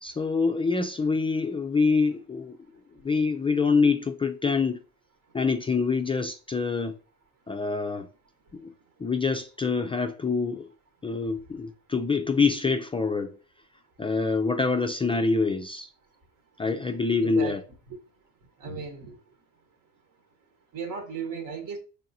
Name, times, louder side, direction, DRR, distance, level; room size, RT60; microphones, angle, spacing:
voice 1, 0.0-2.6 3.0-4.8 5.3-6.9 7.5-8.1 8.5-8.7 9.0-10.7 11.0-13.4 14.0-15.9 16.6-17.6, left 4 dB, 15° left, 0.3 m, -25 dB
voice 2, 17.2-17.6 17.9-18.0 18.6-19.2 20.7-21.8, right 5 dB, 60° right, 1.1 m, -35 dB
4.6 x 3.4 x 2.7 m
supercardioid pair, 80°, 35 cm